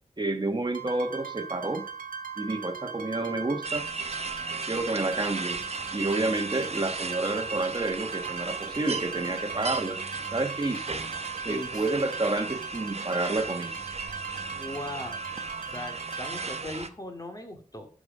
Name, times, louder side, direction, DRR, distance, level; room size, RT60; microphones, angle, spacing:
voice 1, 0.2-1.9 2.4-3.9 4.7-5.6 5.9-10.0 10.3-11.0 11.4-13.8, right 2 dB, 35° right, 1.3 m, -29 dB
sound 1, 0.7-16.6, right 6 dB, 85° right, 0.8 m, -39 dB
sound 2, 3.6-16.9, right 3 dB, 50° right, 0.9 m, -37 dB
voice 2, 11.5-11.9 14.5-15.4 15.7-17.9, left 1 dB, 25° left, 2.2 m, -38 dB
12.0 x 5.1 x 5.4 m
wide cardioid pair, 70°, 14 cm